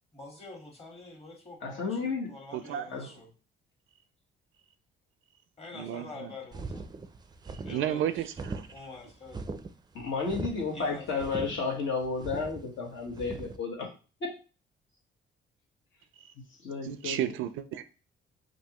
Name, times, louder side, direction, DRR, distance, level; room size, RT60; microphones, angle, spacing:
voice 1, 0.1-3.3 5.6-6.8 7.6-8.3 8.7-9.4 10.7-11.9, left 3 dB, 30° left, 1.5 m, -46 dB
voice 2, 1.6-2.3 2.9-3.1 9.9-13.9 14.2-14.3 16.6-17.3, left 4 dB, 70° left, 1.4 m, -32 dB
voice 3, 2.5-3.1 5.7-6.3 7.7-8.6 16.8-17.8, right 11 dB, 80° right, 0.4 m, -33 dB
sound 1, 6.5-13.6, right 3 dB, 20° right, 0.4 m, -40 dB
5.4 x 2.6 x 2.9 m
cardioid pair, 90°, 20 cm